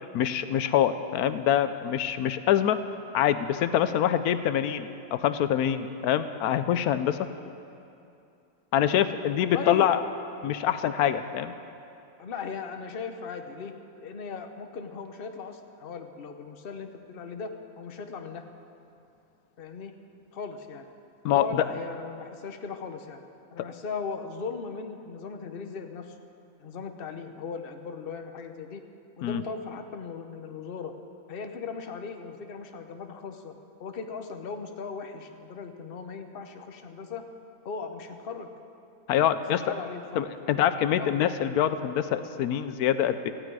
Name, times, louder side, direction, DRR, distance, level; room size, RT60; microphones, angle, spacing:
voice 1, 0.1-2.8 3.1-7.2 8.7-10.0 10.4-11.5 21.2-21.7 29.2-29.4 39.1-39.6 40.2-43.3, left 10 dB, 85° left, 11 dB, 1.1 m, -25 dB
voice 2, 9.4-9.9 12.2-13.7 14.0-18.4 19.6-19.9 20.3-20.8 21.3-23.2 23.5-26.1 26.6-28.8 29.2-30.9 31.3-33.5 33.8-37.2 37.6-38.5 39.6-41.1, left 5 dB, 45° left, 6 dB, 1.0 m, -38 dB
18.0 x 15.0 x 4.8 m, 2.7 s
omnidirectional pair, 1.5 m